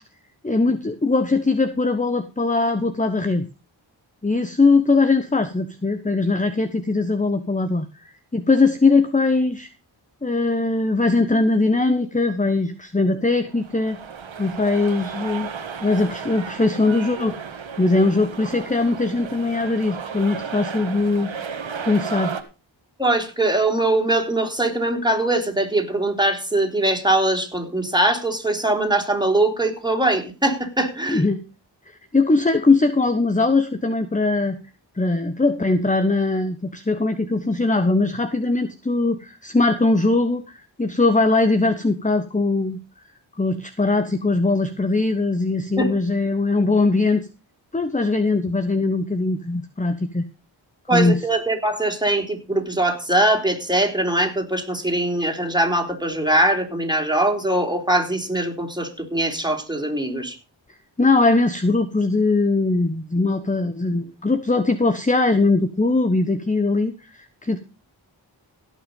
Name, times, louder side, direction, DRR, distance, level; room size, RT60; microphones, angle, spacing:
voice 1, 0.4-3.5 4.2-7.8 8.3-9.7 10.2-14.0 14.4-15.5 15.8-17.4 17.8-21.3 21.8-22.3 31.1-31.4 31.9-34.6 35.0-40.4 40.8-42.8 43.4-47.3 47.7-50.2 50.9-51.2 61.0-67.6, left 3 dB, 15° left, 10 dB, 1.1 m, -20 dB
sound 1, 13.4-22.4, right 6 dB, 75° right, 1.8 m, -34 dB
voice 2, 23.0-31.2 45.8-45.9 50.9-60.4, right 1 dB, 10° right, 3 dB, 3.9 m, -22 dB
17.0 x 6.3 x 5.4 m, 0.32 s
cardioid pair, 45°, 47 cm